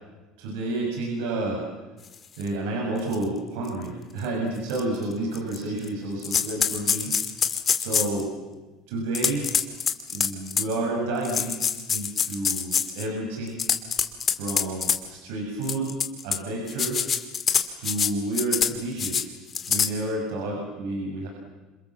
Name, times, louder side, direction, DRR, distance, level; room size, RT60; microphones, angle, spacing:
voice 1, 0.4-1.6 2.4-7.1 7.8-8.3 8.9-9.5 10.1-13.7 14.3-15.9 16.2-17.1 17.8-19.2 19.7-21.3, right 2 dB, 80° right, -1 dB, 6.4 m, -30 dB
sound 1, 2.4-2.5 3.1-3.2 3.7-3.8 4.7-4.8 5.3-5.9 6.2-8.2 9.1-10.7 11.2-13.0 13.5-15.0 15.6-16.4 16.7-18.1 18.3-18.7 19.0-19.2 19.5-19.9, left 7 dB, 25° left, 2.2 m, -25 dB
28.5 x 27.0 x 7.4 m, 1.2 s
cardioid pair, 145°, 0 cm